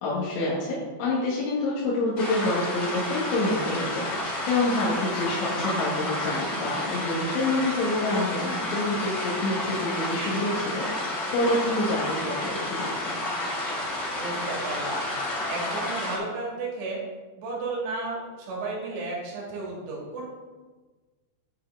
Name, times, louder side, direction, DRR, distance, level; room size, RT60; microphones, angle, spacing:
voice 1, 0.0-13.2, left 2 dB, 85° left, -7 dB, 4.1 m, -27 dB
sound 1, 2.2-16.2, left 1 dB, 35° left, 2.7 m, -30 dB
voice 2, 14.2-15.0 15.5-17.0 17.4-20.3, right 3 dB, 70° right, -3 dB, 4.2 m, -33 dB
10.0 x 9.0 x 3.8 m, 1.3 s
omnidirectional pair, 5.2 m